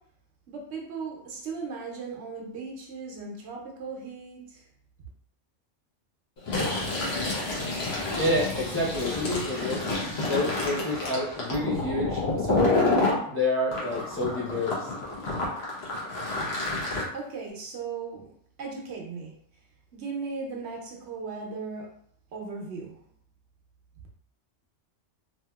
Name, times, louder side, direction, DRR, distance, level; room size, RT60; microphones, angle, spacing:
voice 1, 0.5-4.6 17.1-18.3 18.6-19.3 19.9-21.9 22.3-23.0, right 4 dB, 70° right, -1 dB, 0.9 m, -37 dB
Fill (with liquid), 6.4-13.2 13.7-17.0, left 2 dB, 65° left, 1.0 m, -29 dB
voice 2, 8.1-9.8 10.2-14.9, left 1 dB, 20° left, -6 dB, 0.4 m, -29 dB
2.7 x 2.7 x 2.3 m, 0.64 s
omnidirectional pair, 1.2 m